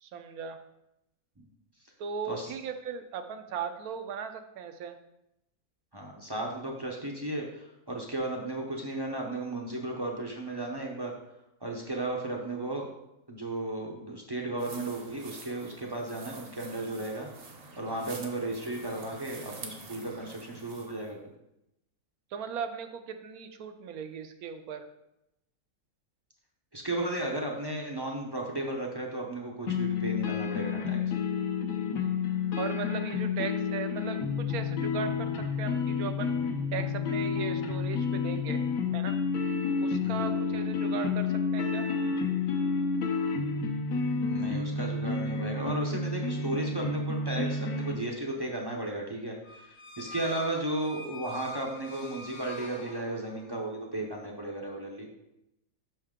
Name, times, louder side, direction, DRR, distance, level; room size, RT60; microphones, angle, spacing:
voice 1, 0.0-0.6 2.0-5.0 22.3-24.8 32.6-35.3 35.6-36.3 36.7-38.6 38.9-39.2 39.8-41.9, right 7 dB, 80° right, 7 dB, 1.1 m, -37 dB
voice 2, 5.9-11.1 11.6-12.9 13.3-17.3 17.8-21.2 26.7-31.0 40.0-40.7 44.3-55.2, right 1 dB, 30° right, 0 dB, 0.5 m, -35 dB
sound 1, 14.6-21.1, right 4 dB, 50° right, 0.9 m, -47 dB
sound 2, 29.7-47.9, left 5 dB, 70° left, 1.2 m, -30 dB
sound 3, 49.4-53.6, left 2 dB, 45° left, 0.6 m, -45 dB
5.7 x 5.5 x 3.6 m, 0.85 s
omnidirectional pair, 1.6 m